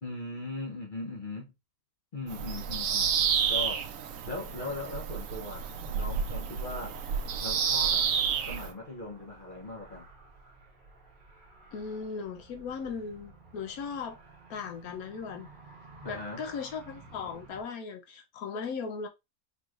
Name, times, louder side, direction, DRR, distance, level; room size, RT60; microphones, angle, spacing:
voice 1, 0.0-1.5 2.1-3.2 3.5-3.9 4.3-7.0 7.4-8.1 8.5-10.1 16.0-16.4, left 2 dB, 40° left, 0.8 m, -39 dB
Bird vocalization bird call bird song, 2.3-8.7, right 7 dB, 70° right, 0.9 m, -30 dB
Car, 3.7-17.6, right 3 dB, 40° right, 1.1 m, -54 dB
voice 2, 11.7-14.2 14.5-15.5 16.1-19.1, left 5 dB, 80° left, 1.1 m, -37 dB
4.3 x 3.1 x 2.4 m
omnidirectional pair, 1.5 m